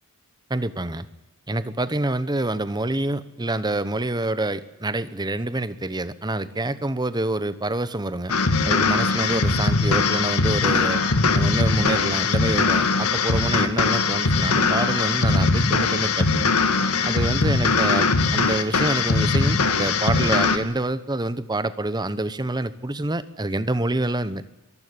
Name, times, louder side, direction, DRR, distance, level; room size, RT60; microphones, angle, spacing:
voice 1, 0.5-1.1 1.5-8.3 8.6-11.0 11.3-16.5 17.0-24.4, right 2 dB, 20° right, 14 dB, 1.0 m, -27 dB
sound 1, 8.3-20.6, left 4 dB, 85° left, 1.9 m, -21 dB
22.5 x 14.5 x 9.8 m, 0.95 s
head